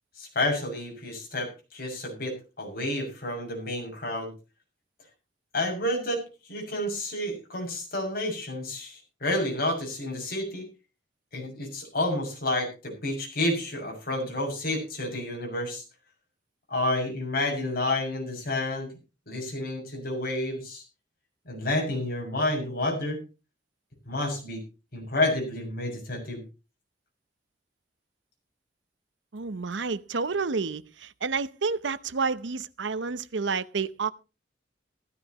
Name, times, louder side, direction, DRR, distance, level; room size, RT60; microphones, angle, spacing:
voice 1, 0.2-4.3 5.5-6.2 6.5-10.7 11.3-15.8 16.7-18.9 19.3-20.8 21.4-23.2 24.1-24.6 24.9-26.4, left 1 dB, 55° left, 6.4 m, -30 dB
voice 2, 29.3-34.1, right 4 dB, 80° right, 0.8 m, -30 dB
15.0 x 15.0 x 3.0 m
head